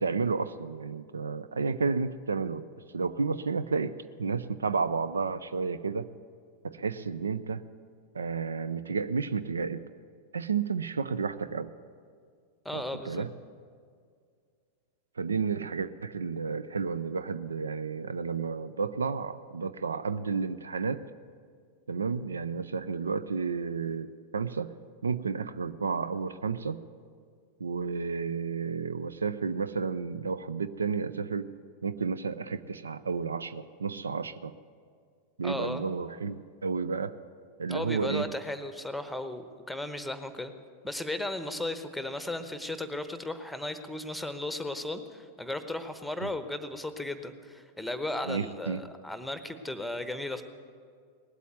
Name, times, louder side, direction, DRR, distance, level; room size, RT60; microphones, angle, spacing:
voice 1, 0.0-2.6 2.9-3.9 4.2-6.1 6.6-7.6 8.1-9.8 10.3-11.7 12.7-13.3 15.2-21.0 21.9-24.7 25.0-26.8 27.6-31.5 31.8-34.5 35.4-37.2 37.6-38.3 46.2-46.3 48.2-48.8, right 5 dB, 75° right, 14 dB, 0.4 m, -31 dB
voice 2, 12.6-13.3 35.4-35.8 37.7-40.5 40.8-50.4, left 1 dB, ahead, 10 dB, 1.0 m, -35 dB
19.0 x 8.3 x 9.2 m, 2.1 s
figure-of-eight pair, 90°, 0 cm